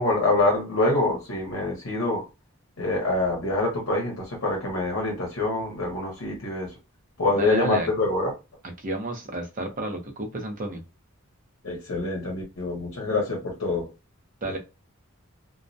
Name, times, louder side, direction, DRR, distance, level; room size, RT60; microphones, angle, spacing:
voice 1, 0.0-2.2 2.8-6.7 7.2-8.3 11.6-13.9, left 2 dB, 65° left, 0.9 m, -25 dB
voice 2, 7.4-7.9 8.8-10.8 14.4-14.6, right 2 dB, 40° right, 0.6 m, -30 dB
2.2 x 2.1 x 2.6 m
head